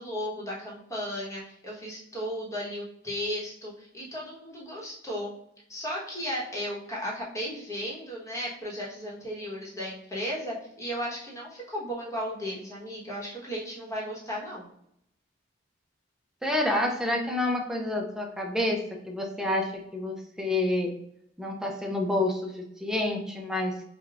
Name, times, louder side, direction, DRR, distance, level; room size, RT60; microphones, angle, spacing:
voice 1, 0.0-5.3 5.7-14.7, equal, 15° left, -5 dB, 1.1 m, -35 dB
voice 2, 16.4-20.9 21.4-23.7, left 1 dB, 5° right, 1 dB, 0.5 m, -28 dB
4.9 x 2.3 x 2.4 m, 0.75 s
head